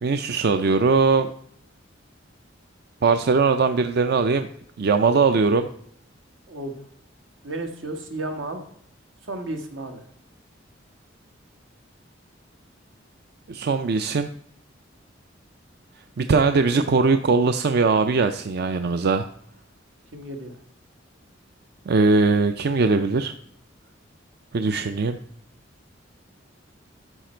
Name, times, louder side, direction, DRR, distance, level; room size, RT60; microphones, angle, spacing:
voice 1, 0.0-1.3 3.0-4.5 4.8-5.7 13.5-14.3 16.2-19.3 21.9-23.3 24.5-25.2, right 4 dB, 55° right, 9 dB, 0.4 m, -20 dB
voice 2, 6.5-6.8 7.4-8.6 9.2-10.0 20.1-20.6, right 2 dB, 80° right, 4 dB, 1.6 m, -33 dB
12.5 x 5.1 x 4.4 m, 0.68 s
head